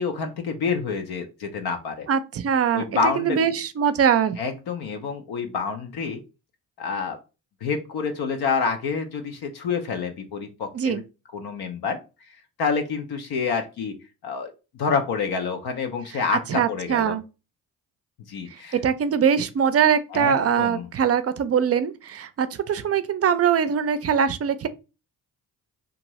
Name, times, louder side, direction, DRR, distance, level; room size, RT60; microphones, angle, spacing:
voice 1, 0.0-2.1 2.7-3.5 4.4-6.2 6.8-7.2 7.6-11.0 11.3-12.0 12.6-13.9 14.2-17.2 18.3-18.8 20.1-20.9, left 5 dB, 70° left, 0.7 m, -28 dB
voice 2, 2.1-4.4 10.7-11.0 16.5-17.2 18.5-24.7, right 7 dB, 35° right, 0.5 m, -22 dB
2.6 x 2.4 x 3.0 m
supercardioid pair, 55°, 41 cm